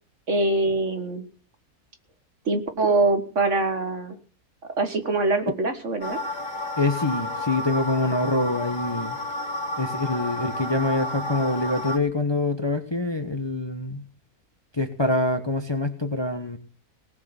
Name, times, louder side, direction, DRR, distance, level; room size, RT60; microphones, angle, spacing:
voice 1, 0.3-1.2 2.5-4.2 4.8-6.2, right 3 dB, 50° right, 7 dB, 2.0 m, -23 dB
sound 1, 6.0-12.0, left 2 dB, 55° left, 2.1 m, -31 dB
voice 2, 6.8-9.2 9.8-14.0 14.7-16.6, left 2 dB, 20° left, 7 dB, 1.2 m, -25 dB
18.5 x 6.7 x 8.0 m, 0.39 s
omnidirectional pair, 1.6 m